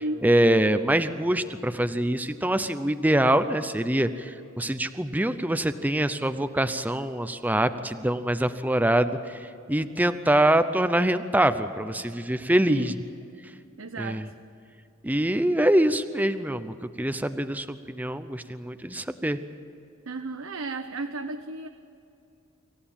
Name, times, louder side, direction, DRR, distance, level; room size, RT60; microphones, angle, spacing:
voice 1, 0.2-9.4 9.7-12.9 14.0-14.3 15.0-19.4, right 1 dB, 10° right, 10 dB, 0.6 m, -24 dB
voice 2, 13.8-14.2 20.1-21.7, right 2 dB, 65° right, 8 dB, 0.8 m, -33 dB
26.0 x 15.5 x 8.9 m, 2.7 s
head